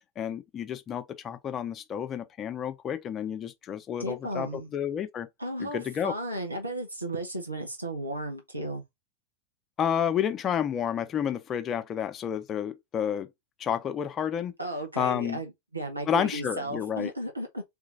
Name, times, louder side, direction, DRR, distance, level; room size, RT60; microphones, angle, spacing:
voice 1, 0.2-5.3 5.6-6.1 9.8-13.3 13.6-14.5 15.0-15.4 16.1-17.1, left 9 dB, 25° left, 0.7 m, -30 dB
voice 2, 4.0-4.7 5.4-8.8 14.6-17.6, right 1 dB, 85° right, 1.0 m, -34 dB
4.2 x 2.7 x 3.8 m
figure-of-eight pair, 90°, 0 cm